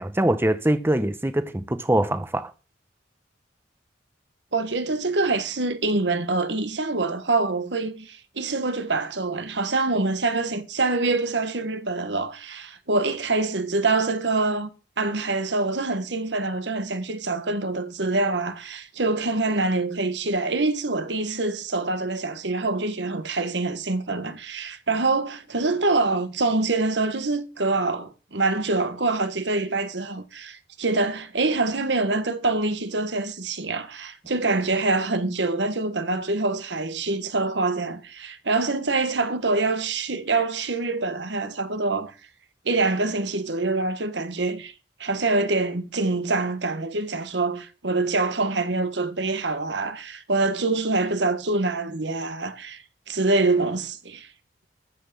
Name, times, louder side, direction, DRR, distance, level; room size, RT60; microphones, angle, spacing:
voice 1, 0.0-2.5, right 1 dB, 15° right, 0.8 m, -23 dB
voice 2, 4.5-14.7 15.0-42.1 42.6-44.7 45.0-52.8 53.1-54.3, right 3 dB, 80° right, 1.5 m, -25 dB
14.0 x 5.9 x 6.9 m
head